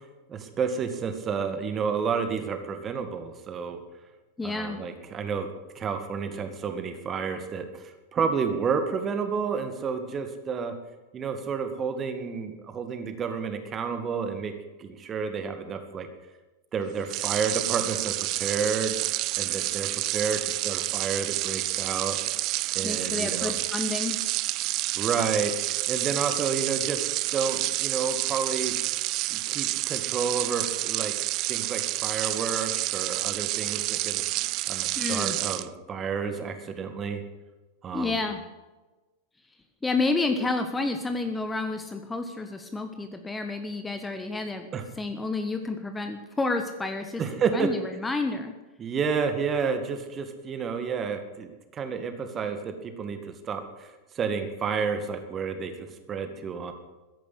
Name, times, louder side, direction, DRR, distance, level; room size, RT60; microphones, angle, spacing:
voice 1, 0.3-3.8 4.4-5.5 5.7-10.7 11.1-14.5 14.8-16.1 16.7-22.2 22.7-23.5 24.9-25.5 25.9-27.1 27.3-28.7 29.3-31.1 31.5-34.2 34.7-37.2 37.8-38.2 44.7-44.9 47.2-47.7 48.8-56.7, right 6 dB, 25° right, 8 dB, 2.1 m, -30 dB
voice 2, 4.4-4.8 22.8-24.2 35.0-35.4 37.9-38.4 39.8-44.7 45.0-48.5, left 3 dB, 10° left, 7 dB, 1.3 m, -30 dB
sound 1, 17.0-35.7, right 19 dB, 40° right, 0.4 m, -29 dB
14.5 x 11.0 x 8.3 m, 1.1 s
figure-of-eight pair, 90°, 0 cm